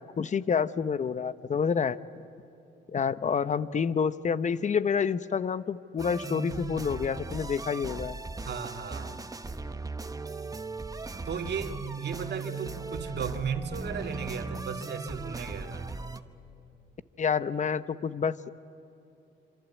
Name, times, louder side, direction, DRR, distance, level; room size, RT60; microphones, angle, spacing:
voice 1, 0.0-2.0 2.9-8.2 17.2-18.5, left 6 dB, 35° left, 14 dB, 0.9 m, -28 dB
sound 1, 6.0-16.2, right 3 dB, 20° right, 1.1 m, -38 dB
voice 2, 8.4-9.2 11.2-15.9, right 6 dB, 60° right, 5 dB, 2.3 m, -35 dB
27.0 x 26.0 x 8.3 m, 3.0 s
cardioid pair, 90°, 20 cm